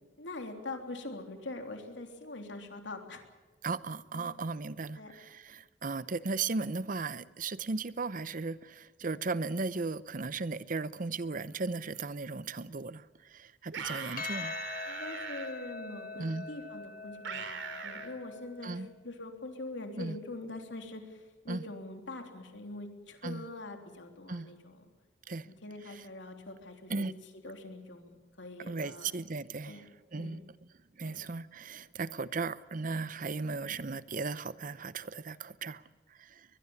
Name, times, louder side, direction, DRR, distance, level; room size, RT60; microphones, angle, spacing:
voice 1, 0.0-3.2 4.1-4.4 4.9-5.1 14.9-24.9 25.4-27.1 27.4-29.1 29.6-29.9 30.1-30.4 31.0-31.2, left 2 dB, 80° left, 3.2 m, -44 dB
voice 2, 3.6-14.5 16.1-16.5 18.6-18.9 20.0-20.2 21.5-21.6 23.2-23.4 24.3-24.5 25.3-25.5 26.9-27.1 28.7-29.8 30.1-30.4 31.0-35.8 36.2-36.4, right 3 dB, 45° right, 0.7 m, -36 dB
sound 1, 13.7-15.5 17.2-18.1, right 5 dB, 90° right, 2.7 m, -40 dB
Percussion, 14.2-18.8, left 4 dB, 50° left, 1.3 m, -43 dB
22.5 x 21.5 x 7.1 m
head